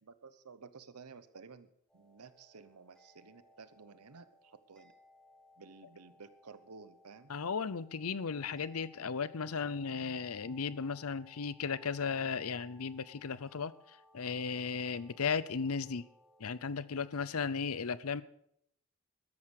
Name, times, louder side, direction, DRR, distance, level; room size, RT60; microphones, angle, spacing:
voice 1, 0.0-1.7 1.9-4.9 5.6-7.3, right 4 dB, 90° right, 13 dB, 0.9 m, -54 dB
sound 1, 1.9-17.5, left 2 dB, 5° left, 1.9 m, -64 dB
voice 2, 7.3-13.7 14.1-16.1 16.4-18.2, left 5 dB, 75° left, 18 dB, 0.7 m, -35 dB
13.5 x 10.5 x 6.5 m, 0.70 s
head